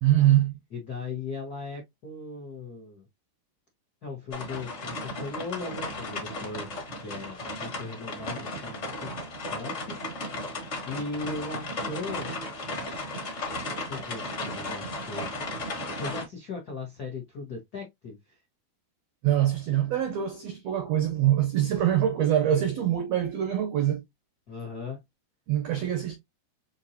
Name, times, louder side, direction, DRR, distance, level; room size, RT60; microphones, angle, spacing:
voice 1, 0.0-0.5 19.2-24.0 25.5-26.2, right 11 dB, 85° right, 1.4 m, -24 dB
voice 2, 0.7-3.1 4.0-6.7 7.0-9.1 9.5-9.9 10.8-12.3 13.8-15.3 15.9-18.4 24.5-25.0, left 4 dB, 85° left, 0.8 m, -38 dB
sound 1, 4.3-16.3, left 2 dB, 35° left, 1.1 m, -35 dB
6.3 x 2.7 x 2.7 m
omnidirectional pair, 3.9 m